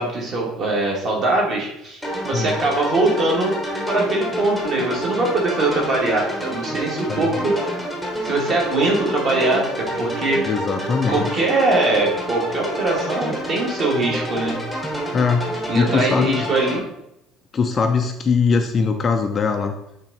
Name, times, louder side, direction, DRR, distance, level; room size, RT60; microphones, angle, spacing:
voice 1, 0.0-3.5 3.9-7.9 8.2-10.4 11.1-14.6 15.7-16.8, right 2 dB, 35° right, -2 dB, 2.1 m, -22 dB
sound 1, 2.0-16.8, equal, ahead, 1.1 m, -28 dB
voice 2, 10.4-11.3 15.1-16.5 17.5-19.7, left 5 dB, 25° left, 5 dB, 0.4 m, -21 dB
8.7 x 3.6 x 4.2 m, 0.81 s
cardioid pair, 175°, 0 cm